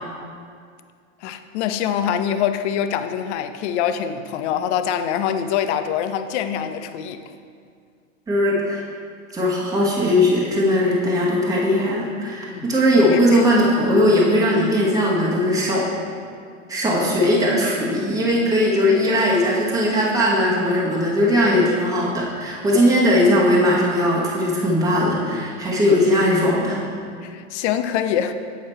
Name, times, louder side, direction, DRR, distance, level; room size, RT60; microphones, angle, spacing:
voice 1, 1.2-7.2 12.5-12.7 13.1-13.4 27.2-28.3, left 9 dB, 60° left, 10 dB, 0.6 m, -24 dB
voice 2, 8.3-8.8 9.3-15.9 16.7-26.8, left 1 dB, 10° right, -5 dB, 1.1 m, -19 dB
8.1 x 4.8 x 4.4 m, 2.2 s
supercardioid pair, 130°, 38 cm